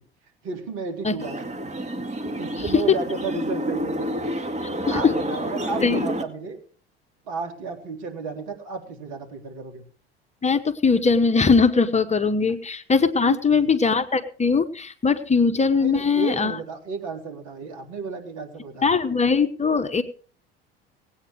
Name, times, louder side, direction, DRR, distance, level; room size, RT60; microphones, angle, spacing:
voice 1, 0.4-1.4 2.2-4.3 4.9-6.6 7.3-9.8 13.2-13.6 15.8-19.0, right 4 dB, 60° right, 4 dB, 3.8 m, -33 dB
sound 1, 1.2-6.2, equal, 20° right, 2.3 m, -29 dB
voice 2, 10.4-16.6 18.8-20.0, left 5 dB, 20° left, 8 dB, 1.3 m, -20 dB
19.0 x 8.9 x 4.7 m, 0.42 s
hypercardioid pair, 70°, 31 cm